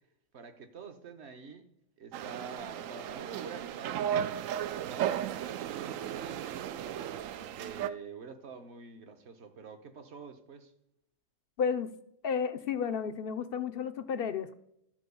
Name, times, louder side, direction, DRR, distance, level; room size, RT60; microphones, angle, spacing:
voice 1, 0.3-1.7 2.0-5.2 5.6-6.8 7.4-10.7, right 5 dB, 55° right, 1.2 m, -47 dB
sound 1, 2.1-7.9, right 10 dB, 75° right, 0.9 m, -35 dB
voice 2, 11.6-11.9 12.2-14.5, left 6 dB, 60° left, 0.7 m, -32 dB
13.0 x 4.6 x 6.8 m
omnidirectional pair, 1.4 m